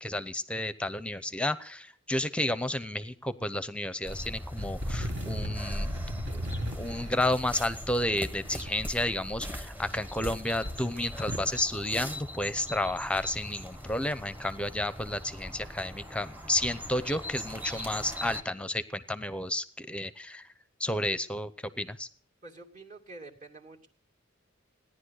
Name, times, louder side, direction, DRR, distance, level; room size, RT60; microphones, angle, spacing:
voice 1, 0.0-5.9 6.3-6.5 6.8-20.4 20.8-21.5 21.8-22.1, left 1 dB, 5° left, 14 dB, 0.8 m, -31 dB
sound 1, 4.1-18.4, equal, 10° right, 1.1 m, -40 dB
sound 2, 4.5-8.7 9.5-10.3 10.6-11.5, equal, 60° right, 2.1 m, -37 dB
voice 2, 22.4-23.9, right 2 dB, 40° right, 0 dB, 2.5 m, -47 dB
17.5 x 10.5 x 6.5 m, 0.43 s
head